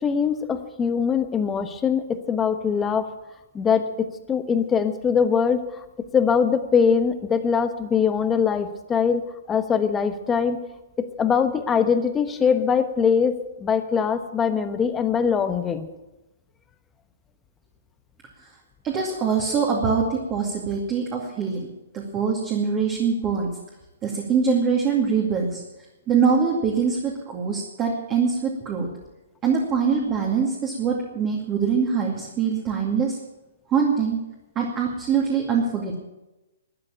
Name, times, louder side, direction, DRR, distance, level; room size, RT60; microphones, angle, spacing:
voice 1, 0.0-3.1 3.5-5.8 6.1-10.6 11.0-15.9, left 6 dB, 15° left, 9 dB, 1.1 m, -22 dB
voice 2, 18.8-21.7 21.9-23.5 24.0-25.6 26.1-28.9 29.4-33.2 33.7-34.2 34.6-36.0, right 6 dB, 25° right, -1 dB, 2.3 m, -23 dB
13.0 x 9.7 x 8.8 m, 1.0 s
hypercardioid pair, 140°, 0 cm